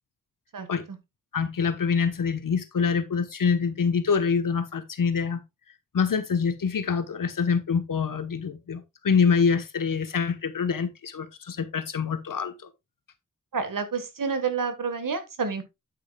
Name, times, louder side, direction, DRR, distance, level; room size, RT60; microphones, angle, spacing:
voice 1, 0.5-1.0 13.5-15.6, right 5 dB, 85° right, 1.6 m, -29 dB
voice 2, 1.3-5.4 5.9-12.5, left 6 dB, 85° left, 1.2 m, -25 dB
9.0 x 8.6 x 2.3 m
wide cardioid pair, 70°, 32 cm